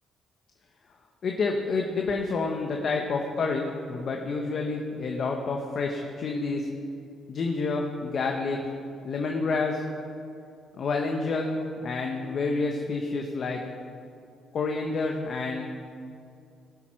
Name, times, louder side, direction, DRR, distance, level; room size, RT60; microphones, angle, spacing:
voice 1, 1.2-6.7 7.3-8.6 9.0-9.8 10.8-13.6 14.5-15.7, left 3 dB, 55° left, 1 dB, 1.1 m, -29 dB
17.5 x 7.5 x 4.6 m, 2.5 s
cardioid pair, 90°, 0 cm